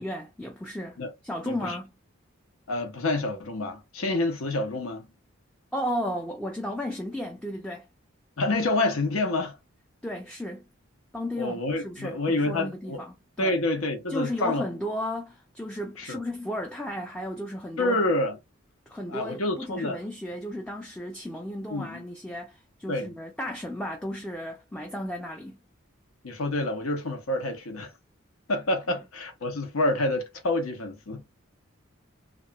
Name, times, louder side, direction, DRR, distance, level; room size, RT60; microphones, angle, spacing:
voice 1, 0.0-1.0 1.2-1.9 5.7-7.9 10.0-10.7 11.1-13.6 14.1-18.0 18.9-25.6 28.9-29.0, equal, 5° left, 0.3 m, -34 dB
voice 2, 1.4-1.8 2.7-5.1 8.4-9.6 11.4-13.0 13.4-14.6 16.0-16.2 17.8-18.4 19.1-20.0 21.7-22.0 22.9-23.1 26.2-27.9 28.5-31.2, left 2 dB, 90° left, 0.8 m, -28 dB
2.9 x 2.4 x 2.2 m
head